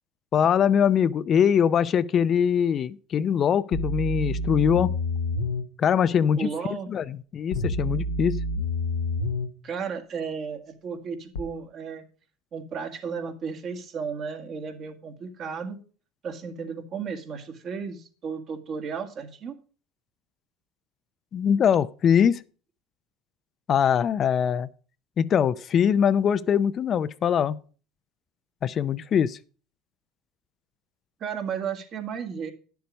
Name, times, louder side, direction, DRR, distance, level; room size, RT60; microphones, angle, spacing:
voice 1, 0.3-4.9 5.8-6.5 6.9-8.4 21.3-22.4 23.7-24.7 25.2-27.6 28.6-29.4, left 8 dB, 45° left, 0.5 m, -22 dB
sound 1, 3.7-5.7 7.5-9.5 11.4-11.5, left 1 dB, 85° left, 0.9 m, -28 dB
voice 2, 6.4-6.9 9.6-12.0 12.5-15.8 16.2-19.6 31.2-32.5, right 6 dB, 45° right, 2.0 m, -34 dB
10.0 x 7.0 x 5.2 m
hypercardioid pair, 85°, 0 cm